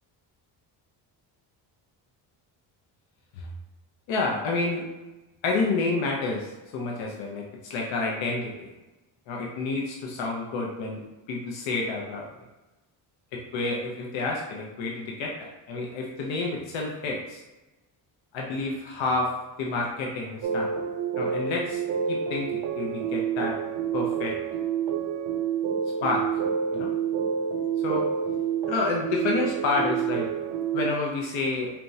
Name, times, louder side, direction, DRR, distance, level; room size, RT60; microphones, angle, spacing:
voice 1, 4.1-4.9 5.4-7.4 7.7-8.7 9.3-12.3 13.3-17.4 18.3-19.3 19.6-20.7 21.2-21.8 22.1-23.6 23.9-24.4 26.0-26.4 26.7-26.9 27.8-28.1 28.7-30.3 30.7-31.7, left 3 dB, 80° left, -1 dB, 0.8 m, -29 dB
sound 1, 20.4-30.9, right 7 dB, 65° right, 0.5 m, -28 dB
4.4 x 3.4 x 2.7 m, 1.1 s
cardioid pair, 165°, 46 cm